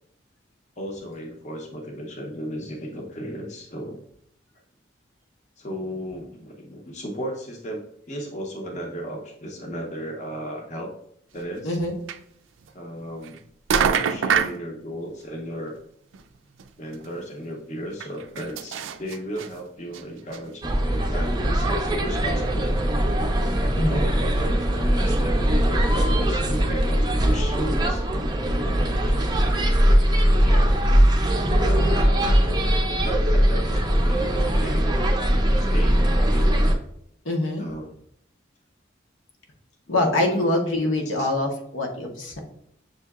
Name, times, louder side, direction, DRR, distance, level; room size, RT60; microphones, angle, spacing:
voice 1, 0.8-4.0 5.6-10.9 11.3-11.8 12.7-13.4 13.8-15.8 16.8-20.6 20.9-23.0 23.8-28.0 28.6-29.3 30.4-30.8 31.6-35.0 35.6-36.7 37.6-37.9 39.9-40.4 40.7-40.9 41.2-41.3, equal, 40° left, 1 dB, 0.6 m, -35 dB
voice 2, 11.6-11.9 23.7-24.0 37.2-37.7 39.9-42.4, left 1 dB, 85° left, 1 dB, 0.9 m, -24 dB
sound 1, 11.7-11.8 12.1-12.2 13.2-13.4 13.7-14.6 16.1-16.2 16.6-16.7 16.9-17.0 18.0-19.5 19.9-20.0 20.3-20.4, right 7 dB, 80° right, 0.4 m, -24 dB
sound 2, 20.6-36.7, equal, 20° right, 0.4 m, -21 dB
6.6 x 2.8 x 2.3 m, 0.71 s
head